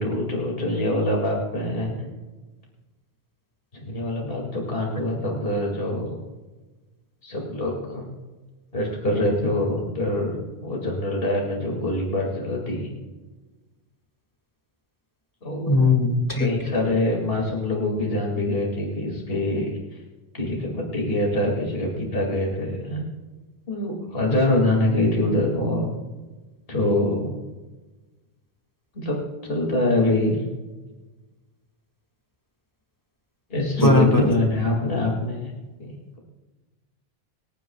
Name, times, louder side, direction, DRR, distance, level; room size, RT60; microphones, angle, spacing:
voice 1, 0.0-2.1 3.7-6.2 7.2-8.0 8.7-13.0 15.4-15.9 16.4-19.8 20.3-23.1 23.7-25.9 26.7-27.3 28.9-30.4 33.5-35.5 35.8-36.2, left 1 dB, 65° left, -1 dB, 2.7 m, -24 dB
voice 2, 15.7-16.5 33.8-34.3, left 2 dB, 20° left, 2 dB, 1.9 m, -19 dB
27.5 x 9.3 x 2.4 m, 1.2 s
omnidirectional pair, 1.1 m